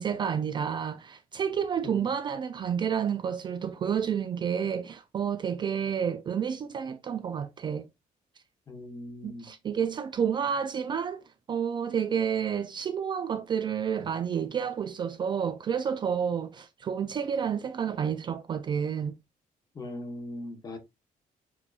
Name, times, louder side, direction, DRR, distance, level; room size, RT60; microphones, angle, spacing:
voice 1, 0.0-7.9 9.2-11.2 11.5-19.1, right 7 dB, 30° right, 0.3 m, -30 dB
voice 2, 8.7-9.5 19.7-20.8, left 1 dB, 25° left, 1.0 m, -40 dB
7.1 x 2.8 x 2.3 m
cardioid pair, 175°, 15 cm